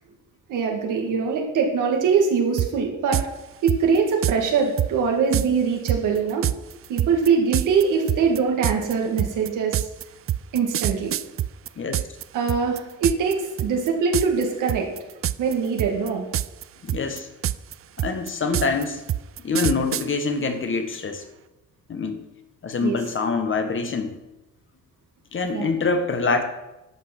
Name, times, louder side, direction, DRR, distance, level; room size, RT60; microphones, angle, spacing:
voice 1, 0.5-3.2 3.6-6.4 6.9-9.9 10.5-11.1 12.3-14.9 15.4-16.3 22.8-23.0 25.5-25.7, right 5 dB, 85° right, 1 dB, 2.1 m, -22 dB
sound 1, 2.6-2.7 3.1-3.3 3.7-4.4 4.8-4.9 5.3-5.5 5.9-12.2 12.5-13.3 13.6-13.9 14.1-14.4 14.7-15.5 15.8-16.6 16.9-20.1, right 12 dB, 45° right, 0.4 m, -25 dB
voice 2, 16.8-17.3 18.0-19.0 19.4-21.2 21.9-22.2 22.6-24.2 25.3-26.4, left 4 dB, 40° left, 7 dB, 1.4 m, -25 dB
11.0 x 5.8 x 6.0 m, 0.99 s
cardioid pair, 90°, 30 cm